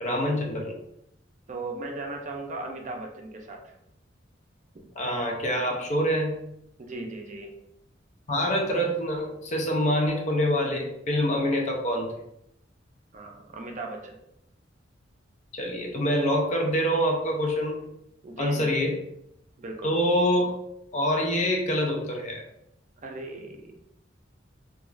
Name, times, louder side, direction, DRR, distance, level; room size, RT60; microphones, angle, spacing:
voice 1, 0.0-0.7 5.0-6.3 8.3-12.1 15.5-17.8 18.4-19.0 19.8-20.5 20.9-22.4, equal, 40° left, 1 dB, 0.5 m, -25 dB
voice 2, 1.5-3.7 6.8-7.5 13.1-14.2 18.2-18.8 19.6-20.0 23.0-23.7, right 2 dB, 40° right, 2 dB, 0.4 m, -37 dB
2.3 x 2.3 x 3.0 m, 0.79 s
head